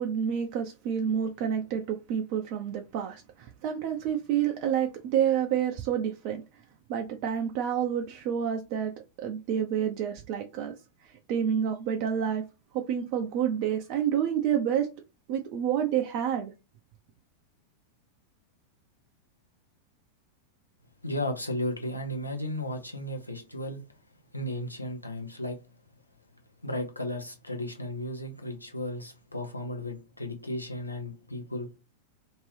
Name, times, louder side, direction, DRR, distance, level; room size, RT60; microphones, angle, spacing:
voice 1, 0.0-6.4 6.9-8.9 9.2-10.7 11.3-12.4 12.7-14.9 15.3-16.5, right 9 dB, 45° right, 0.4 m, -28 dB
voice 2, 21.0-23.8 24.3-25.6 26.6-31.7, left 1 dB, 85° left, 0.7 m, -34 dB
2.7 x 2.5 x 3.2 m
figure-of-eight pair, 90°, 0 cm